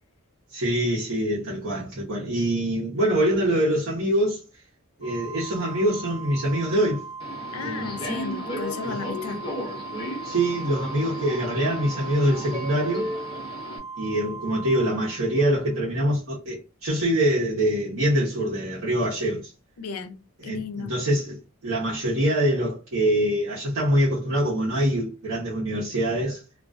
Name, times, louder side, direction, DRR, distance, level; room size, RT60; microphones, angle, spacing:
voice 1, 0.5-4.4 5.0-7.0 7.6-8.1 8.8-9.0 10.2-13.1 14.0-19.5 20.4-21.4 21.6-26.4, right 1 dB, 70° right, 0.8 m, -24 dB
Organ, 5.0-15.7, right 5 dB, 60° left, 0.8 m, -39 dB
Subway metro underground, 7.2-13.8, left 1 dB, 25° left, 0.6 m, -35 dB
voice 2, 7.5-9.4 19.8-20.9, left 5 dB, 90° left, 0.4 m, -34 dB
2.3 x 2.2 x 2.4 m
head